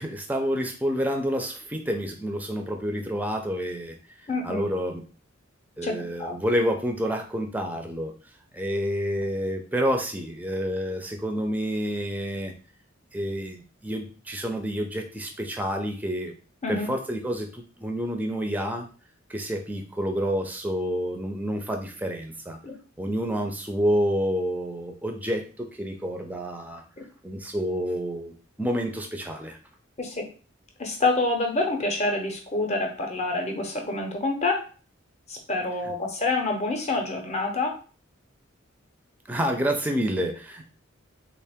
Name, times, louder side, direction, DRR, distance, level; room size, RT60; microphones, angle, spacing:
voice 1, 0.0-4.0 4.4-5.0 5.8-8.1 8.5-12.5 13.1-16.3 16.7-18.9 19.3-22.6 23.0-26.8 27.2-29.6 35.8-35.9 39.3-40.6, equal, 10° right, 4 dB, 0.5 m, -28 dB
voice 2, 4.3-4.6 5.8-6.4 16.6-16.9 22.6-22.8 30.0-30.2 30.8-34.6 35.3-37.7, left 2 dB, 35° left, 3 dB, 0.7 m, -27 dB
3.7 x 2.5 x 3.5 m, 0.38 s
head